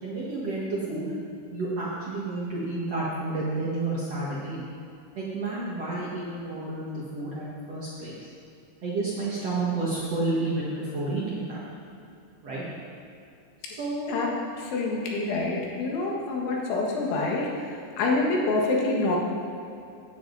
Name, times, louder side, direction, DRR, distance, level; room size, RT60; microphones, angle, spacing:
voice 1, 0.0-1.1 1.5-4.6 5.2-8.2 8.8-11.6 12.4-12.6 13.6-14.1, right 2 dB, 55° right, -7 dB, 1.8 m, -30 dB
voice 2, 14.6-19.2, left 2 dB, 80° left, -2 dB, 4.0 m, -27 dB
16.5 x 10.0 x 4.1 m, 2.6 s
omnidirectional pair, 5.4 m